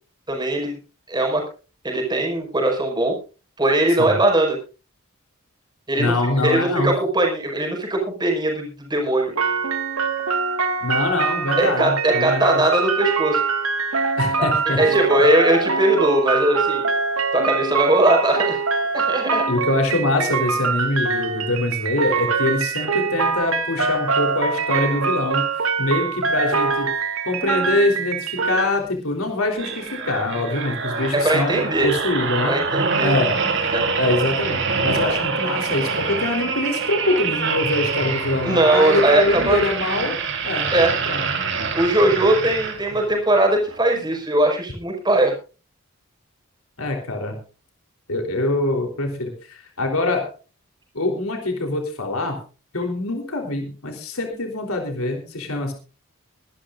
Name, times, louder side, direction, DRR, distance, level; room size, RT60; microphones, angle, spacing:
voice 1, 0.3-0.8 1.1-1.4 1.8-3.2 3.6-4.6 5.9-6.2 6.4-9.3 11.6-13.4 14.4-14.5 14.8-16.9 17.3-18.6 18.9-19.5 31.1-31.9 32.5-33.1 33.7-33.9 38.4-39.6 40.7-40.9 41.7-45.3, right 1 dB, 20° right, 1 dB, 5.3 m, -20 dB
voice 2, 6.0-6.9 10.8-12.6 14.2-15.1 19.5-25.5 25.8-26.9 27.3-32.6 33.0-34.6 34.8-40.2 40.4-40.7 41.1-41.2 46.8-47.4 48.1-50.3 50.9-52.4 52.7-55.7, left 2 dB, 90° left, 3 dB, 3.6 m, -24 dB
sound 1, 9.4-28.6, right 4 dB, 80° right, 1.9 m, -23 dB
sound 2, 29.5-43.1 43.7-43.9, right 5 dB, 60° right, 3.5 m, -25 dB
23.0 x 12.5 x 2.5 m, 0.35 s
head